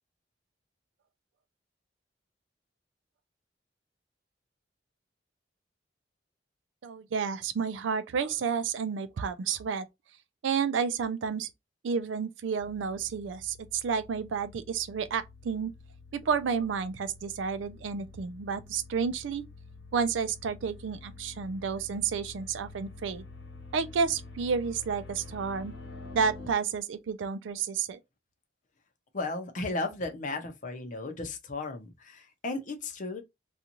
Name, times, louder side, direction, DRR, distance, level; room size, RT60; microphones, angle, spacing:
voice 1, 6.8-9.9 10.4-11.5 11.8-15.7 16.1-19.4 19.9-23.2 23.7-25.7 26.1-28.0, right 6 dB, 85° right, 0.4 m, -31 dB
sound 1, 12.6-26.5, left 3 dB, 70° left, 1.1 m, -48 dB
voice 2, 29.1-33.2, left 2 dB, 45° left, 0.6 m, -35 dB
2.5 x 2.4 x 2.8 m
head